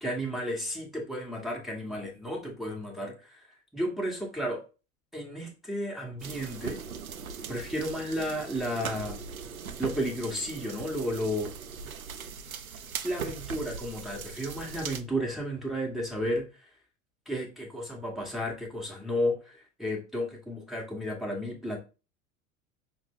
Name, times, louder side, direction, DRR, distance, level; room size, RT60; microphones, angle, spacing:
voice 1, 0.0-3.5 3.7-4.6 5.1-6.8 7.5-9.2 9.8-11.5 13.0-16.5 17.3-21.8, equal, ahead, -2 dB, 1.1 m, -33 dB
sound 1, 6.2-15.0, right 6 dB, 85° right, 0.5 m, -40 dB
5.7 x 2.2 x 3.6 m, 0.31 s
figure-of-eight pair, 75°, 41 cm